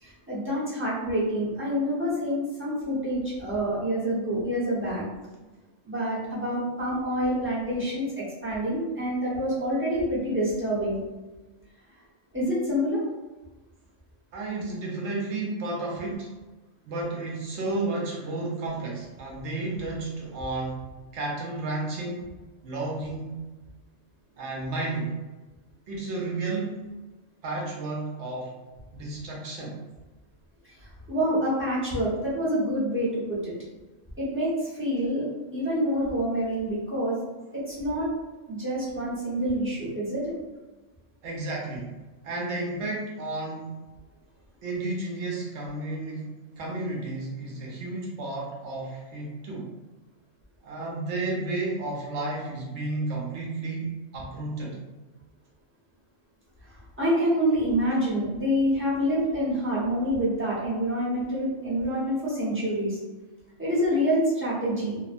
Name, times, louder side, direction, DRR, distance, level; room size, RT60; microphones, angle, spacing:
voice 1, 0.0-5.0 5.9-8.1 8.4-11.0 12.3-13.0 31.1-33.5 34.2-34.5 34.8-35.2 35.5-37.2 37.7-38.1 38.5-40.3 57.0-63.0 63.6-65.0, equal, 10° right, -9 dB, 0.7 m, -27 dB
voice 2, 14.3-16.3 16.9-20.8 21.1-22.3 22.6-23.4 24.4-25.2 25.9-26.9 27.4-28.5 28.9-29.8 41.2-41.9 42.2-43.8 44.6-49.7 50.6-54.8, right 2 dB, 70° right, -2 dB, 0.9 m, -32 dB
2.8 x 2.0 x 2.5 m, 1.2 s
omnidirectional pair, 1.3 m